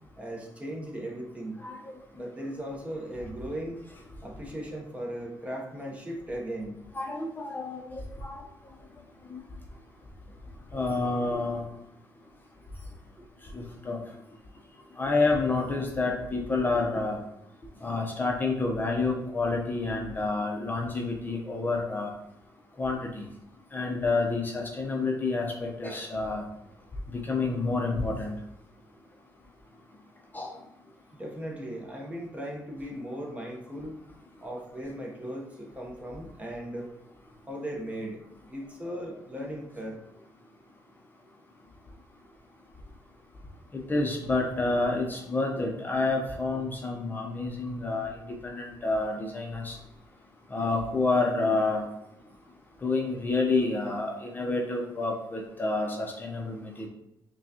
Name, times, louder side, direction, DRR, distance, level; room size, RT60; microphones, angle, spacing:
voice 1, 0.2-1.6 2.1-3.8 4.2-6.8 31.1-34.0 34.4-36.9 37.5-40.0, right 1 dB, 15° right, 0 dB, 0.8 m, -37 dB
voice 2, 6.9-8.4 9.3-9.4 10.7-11.6 13.5-14.0 15.0-17.2 17.8-22.1 22.8-23.3 23.7-26.4 27.1-28.3 30.3-30.5 43.7-48.1 48.4-49.8 50.5-51.9 52.8-56.9, left 3 dB, 25° left, 0 dB, 0.6 m, -29 dB
5.8 x 2.3 x 2.8 m, 0.83 s
cardioid pair, 115°, 8 cm